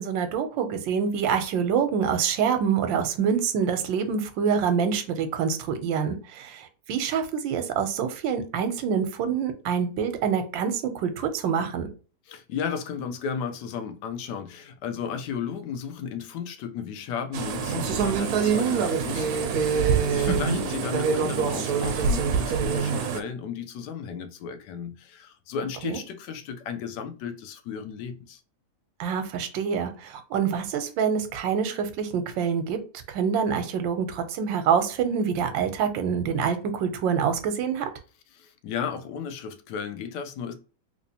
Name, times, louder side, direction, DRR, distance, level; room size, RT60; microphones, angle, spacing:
voice 1, 0.0-11.9 20.2-20.6 25.8-26.0 29.0-32.8 33.1-37.9, right 7 dB, 90° right, 1.4 m, -26 dB
voice 2, 12.3-28.4 38.3-40.5, left 7 dB, 75° left, 1.1 m, -34 dB
sound 1, 17.3-23.2, right 6 dB, 70° right, 0.9 m, -25 dB
3.3 x 3.0 x 2.7 m
omnidirectional pair, 2.0 m